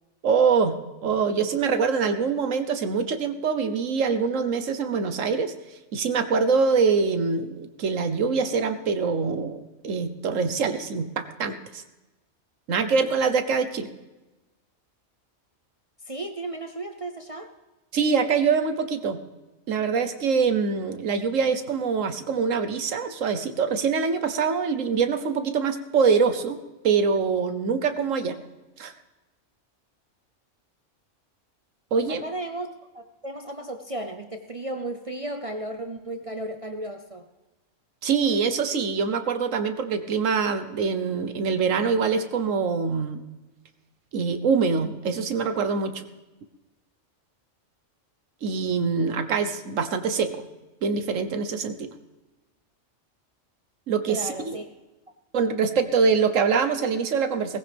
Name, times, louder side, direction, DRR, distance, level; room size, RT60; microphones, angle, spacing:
voice 1, 0.2-5.5 5.9-11.8 12.7-13.9 17.9-19.2 19.7-28.4 28.8-28.9 31.9-32.2 38.0-43.2 44.1-46.0 48.4-50.4 50.8-51.9 53.9-54.6 55.3-57.6, right 5 dB, 90° right, 10 dB, 1.4 m, -24 dB
voice 2, 16.0-17.5 32.1-32.7 32.9-37.3 54.1-54.7, right 1 dB, 30° right, 5 dB, 0.7 m, -34 dB
18.5 x 15.5 x 3.5 m, 1.1 s
omnidirectional pair, 1.3 m